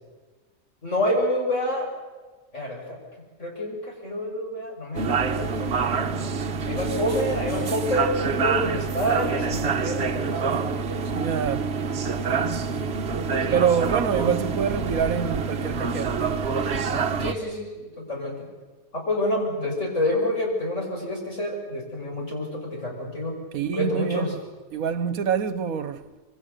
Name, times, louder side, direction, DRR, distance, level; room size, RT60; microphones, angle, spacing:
voice 1, 0.8-1.9 2.5-3.0 3.4-6.1 6.6-10.5 13.5-13.6 17.2-18.5 18.9-23.4 23.7-24.3, left 1 dB, 55° left, 6.5 m, -28 dB
sound 1, 4.9-17.3, right 5 dB, 45° right, 1.3 m, -26 dB
voice 2, 11.2-11.7 13.5-16.8 23.5-24.4 24.7-26.1, right 7 dB, 70° right, 1.5 m, -26 dB
26.5 x 23.5 x 6.8 m
omnidirectional pair, 1.6 m